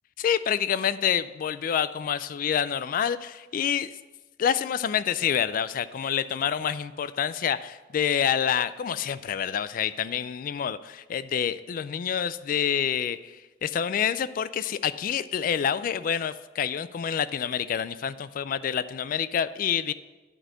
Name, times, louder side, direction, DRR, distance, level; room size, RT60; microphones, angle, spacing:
voice 1, 0.2-3.9 4.4-13.4 13.6-19.9, left 8 dB, 50° left, 15 dB, 0.3 m, -27 dB
11.0 x 4.2 x 6.2 m, 1.2 s
head